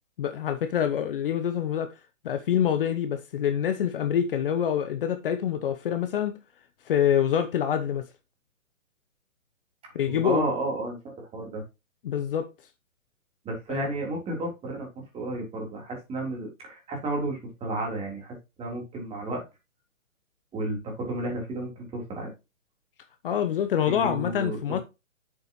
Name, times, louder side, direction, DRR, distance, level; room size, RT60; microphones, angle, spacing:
voice 1, 0.2-1.9 2.2-6.4 6.8-8.1 9.9-10.5 12.0-12.5 13.7-13.9 23.2-24.8, left 9 dB, 40° left, 1.0 m, -26 dB
voice 2, 10.1-11.6 13.5-19.4 20.5-22.3 23.9-24.6, right 2 dB, 15° right, 3.7 m, -32 dB
9.1 x 7.4 x 3.1 m
hypercardioid pair, 135°, 40 cm